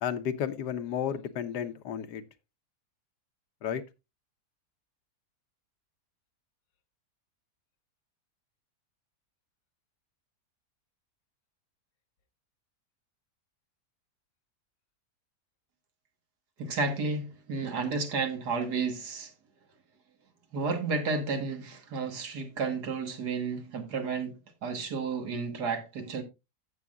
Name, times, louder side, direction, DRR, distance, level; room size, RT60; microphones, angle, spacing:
voice 1, 0.0-2.2 3.6-3.8, left 8 dB, 90° left, 1.5 m, -32 dB
voice 2, 16.6-19.3 20.5-24.4 24.6-26.2, right 4 dB, 80° right, 2.2 m, -32 dB
15.0 x 7.1 x 2.4 m
omnidirectional pair, 1.7 m